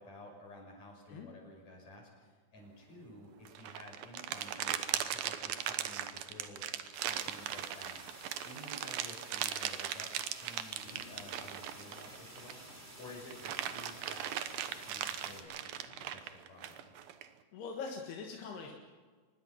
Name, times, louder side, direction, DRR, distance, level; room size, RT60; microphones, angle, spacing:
voice 1, 0.0-8.0 8.4-12.6 13.0-15.7 16.1-16.9, left 1 dB, 45° left, 1 dB, 7.1 m, -53 dB
sound 1, 3.5-12.7 13.1-17.3, right 11 dB, 70° right, 2.7 m, -38 dB
sound 2, 6.9-15.4, right 1 dB, 15° right, 2.3 m, -53 dB
sound 3, 10.8-16.1, left 1 dB, 15° left, 6.3 m, -58 dB
voice 2, 17.5-18.7, left 5 dB, 80° left, 1 dB, 3.7 m, -42 dB
25.0 x 21.0 x 5.8 m, 1.5 s
omnidirectional pair, 4.6 m